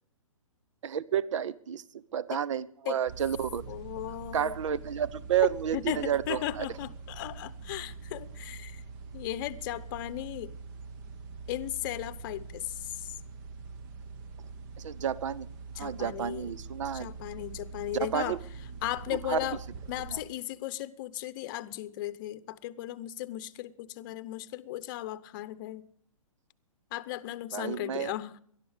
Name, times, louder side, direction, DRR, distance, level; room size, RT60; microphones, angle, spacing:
voice 1, 0.8-3.6 4.3-6.7 14.8-15.5 15.8-17.1 17.9-18.4 19.3-19.5 20.1-20.2 27.5-28.1, right 9 dB, 60° right, 0.8 m, -31 dB
sound 1, 3.1-20.2, right 4 dB, 35° right, 1.1 m, -44 dB
voice 2, 3.7-4.5 5.7-8.8 9.1-10.5 11.5-13.1 15.7-16.5 16.9-18.4 18.8-19.6 19.9-25.9 26.9-28.3, left 14 dB, 40° left, 0.8 m, -36 dB
19.0 x 12.0 x 5.0 m
hypercardioid pair, 130°, 18 cm